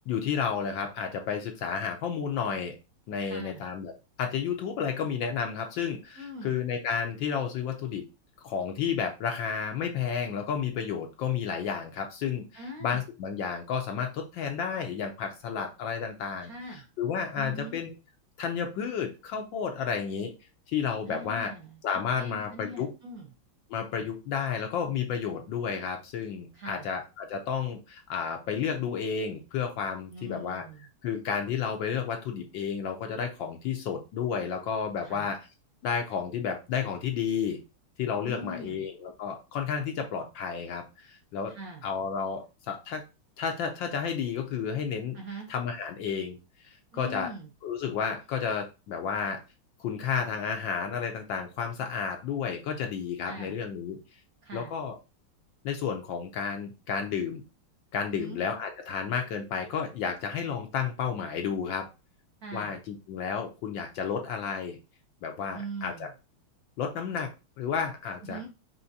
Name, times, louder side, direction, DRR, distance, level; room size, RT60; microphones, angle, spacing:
voice 1, 0.1-2.7 3.1-3.9 4.2-8.0 8.4-12.4 12.8-16.5 17.0-17.9 18.4-20.3 20.7-21.5 21.8-22.9 23.7-30.6 31.0-35.4 35.8-37.6 38.0-41.5 41.8-43.0 43.4-45.2 45.5-46.4 46.6-47.3 47.6-49.4 49.8-54.0 54.5-54.9 55.6-57.4 57.9-61.9 62.5-64.8 65.2-66.1 66.8-67.3 67.6-68.4, left 7 dB, 70° left, 4 dB, 1.2 m, -31 dB
voice 2, 3.2-3.6 6.2-6.6 12.5-13.1 16.4-16.9 17.4-17.8 21.1-23.3 23.9-24.1 26.5-26.9 30.1-30.9 35.0-35.3 38.3-38.9 41.5-41.9 45.1-45.5 46.9-47.5 53.3-53.6 54.4-54.7 58.1-58.4 62.4-62.8 65.5-66.1 68.2-68.5, right 2 dB, 55° right, 0 dB, 1.1 m, -42 dB
5.7 x 3.1 x 2.7 m, 0.28 s
omnidirectional pair, 2.4 m